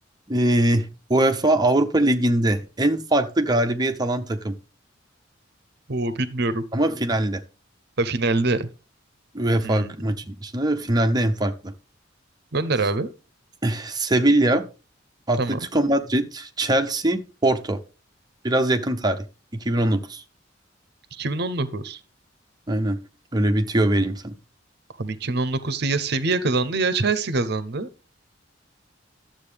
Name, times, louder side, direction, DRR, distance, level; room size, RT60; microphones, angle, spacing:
voice 1, 0.3-4.5 6.7-7.4 9.3-11.7 13.6-14.6 15.3-17.8 18.4-19.2 19.5-20.2 22.7-23.0 23.3-24.4, right 1 dB, 20° right, 0.8 m, -22 dB
voice 2, 5.9-6.6 8.0-8.7 9.6-9.9 12.5-13.1 15.4-15.6 21.1-22.0 25.0-27.9, right 3 dB, 60° right, 0.7 m, -24 dB
12.0 x 7.6 x 3.4 m
head